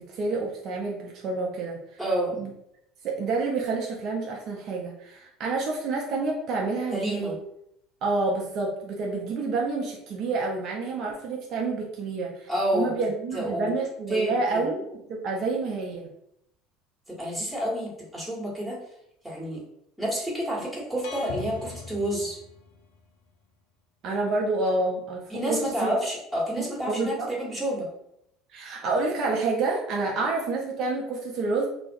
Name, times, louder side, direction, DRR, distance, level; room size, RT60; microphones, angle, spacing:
voice 1, 0.0-1.8 2.4-2.5 3.0-7.3 8.0-16.1 24.0-25.9 26.9-27.3 28.5-31.7, right 3 dB, 55° right, -1 dB, 0.5 m, -28 dB
voice 2, 2.0-2.4 6.9-7.3 12.5-12.9 13.3-13.7 14.1-14.6 17.1-18.8 19.2-19.6 20.0-22.4 25.3-27.9, right 1 dB, 5° right, -5 dB, 1.2 m, -29 dB
sound 1, 21.0-23.0, left 5 dB, 70° left, 0.3 m, -39 dB
2.3 x 2.1 x 2.6 m, 0.77 s
hypercardioid pair, 70°, 0 cm